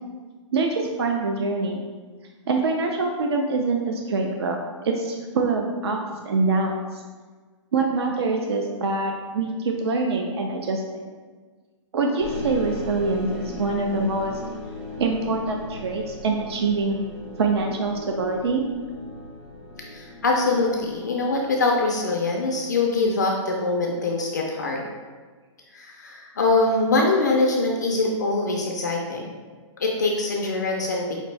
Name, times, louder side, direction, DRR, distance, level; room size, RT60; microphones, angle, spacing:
voice 1, 0.5-1.8 2.5-6.0 6.3-7.0 7.7-10.8 11.9-14.4 15.0-17.0 17.4-18.6, right 3 dB, 55° right, 2 dB, 0.4 m, -24 dB
sound 1, 12.2-21.9, left 2 dB, 10° right, 0.7 m, -38 dB
voice 2, 19.9-24.8 25.7-29.2 29.8-31.1, left 3 dB, 35° left, 0 dB, 0.3 m, -23 dB
5.0 x 2.6 x 3.1 m, 1.5 s
hypercardioid pair, 180°, 17 cm